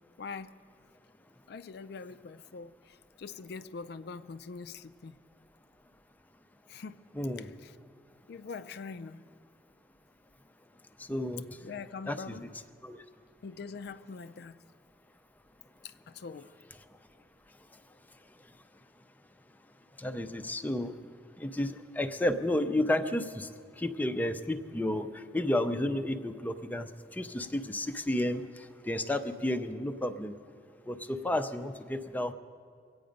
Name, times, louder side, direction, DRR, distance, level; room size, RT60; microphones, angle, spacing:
voice 1, 0.2-0.5 1.5-5.2 6.7-7.1 7.4-7.8 8.3-9.2 11.6-12.5 13.4-14.6 15.8-16.6, left 5 dB, 65° left, 11 dB, 0.4 m, -43 dB
voice 2, 7.2-7.5 11.1-11.4 12.1-12.5 12.8-13.0 20.0-20.9 21.4-23.5 23.8-28.4 28.9-30.3 30.9-32.3, left 1 dB, 10° left, 7 dB, 0.5 m, -31 dB
24.0 x 8.6 x 5.2 m, 2.1 s
head